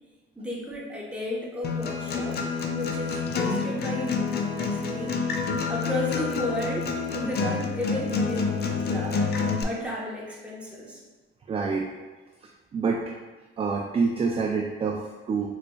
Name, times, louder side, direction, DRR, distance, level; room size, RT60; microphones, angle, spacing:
voice 1, 0.4-5.2 5.7-9.2 9.6-11.0, left 1 dB, 5° right, -4 dB, 0.9 m, -33 dB
Acoustic guitar, 1.6-9.6, left 5 dB, 55° left, 0.5 m, -28 dB
voice 2, 11.5-11.9 12.4-13.1 13.6-15.5, right 4 dB, 30° right, 0 dB, 0.3 m, -27 dB
3.9 x 3.1 x 2.3 m, 1.3 s
cardioid pair, 90°, 20 cm